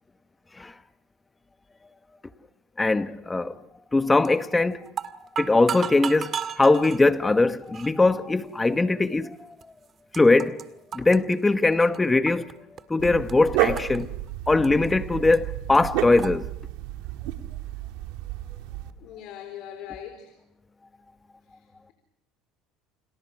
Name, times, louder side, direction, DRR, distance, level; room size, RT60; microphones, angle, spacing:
voice 1, 2.8-3.6 3.9-4.9 5.4-9.4 10.1-10.6 10.9-12.5 12.9-14.1 14.5-16.5, left 3 dB, 15° left, 1.3 m, -21 dB
sound 1, 4.2-4.5 4.9-7.0 7.7-7.9 8.7-8.8 9.6-9.7 9.9-10.7 10.9-12.5 12.8-13.3 13.8-14.9 15.3-15.4 15.7-15.8 16.2-16.3, right 7 dB, 35° right, 1.9 m, -34 dB
Dog, 13.0-18.9, right 13 dB, 80° right, 2.0 m, -31 dB
voice 2, 19.0-20.3 21.6-21.9, left 10 dB, 65° left, 4.0 m, -41 dB
29.5 x 27.0 x 6.1 m
supercardioid pair, 110°, 0 cm